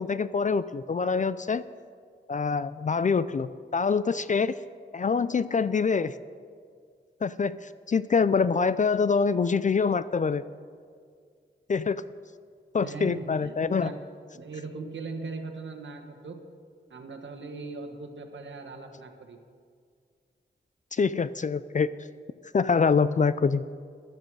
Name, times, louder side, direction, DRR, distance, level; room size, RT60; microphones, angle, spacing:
voice 1, 0.0-1.6 2.3-4.6 4.9-6.2 7.2-10.4 11.7-12.0 12.7-13.9 20.9-21.9 22.5-23.7, left 5 dB, 40° left, 15 dB, 0.4 m, -25 dB
voice 2, 12.8-14.0 14.3-16.4 16.9-19.4, right 3 dB, 80° right, 5 dB, 1.4 m, -39 dB
15.5 x 11.5 x 4.7 m, 2.1 s
wide cardioid pair, 75°, 19 cm